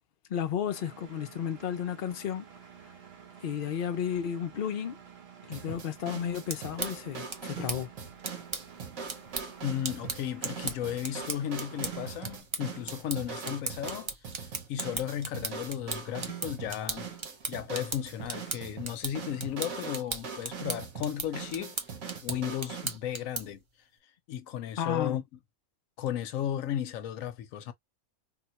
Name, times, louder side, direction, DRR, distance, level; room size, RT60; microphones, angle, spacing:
voice 1, 0.3-2.4 3.4-5.0 5.5-7.9 24.8-25.2, left 9 dB, 55° left, 0.6 m, -33 dB
Engine, 0.7-12.4, right 7 dB, 55° right, 0.9 m, -51 dB
sound 1, 5.5-23.0, right 6 dB, 80° right, 1.4 m, -41 dB
sound 2, 6.3-23.7, right 3 dB, 40° right, 0.4 m, -39 dB
voice 2, 9.6-14.1 14.7-17.1 17.5-21.8 22.2-23.6 24.3-25.2 26.0-27.7, left 10 dB, 80° left, 1.0 m, -34 dB
3.7 x 2.2 x 2.8 m
omnidirectional pair, 1.4 m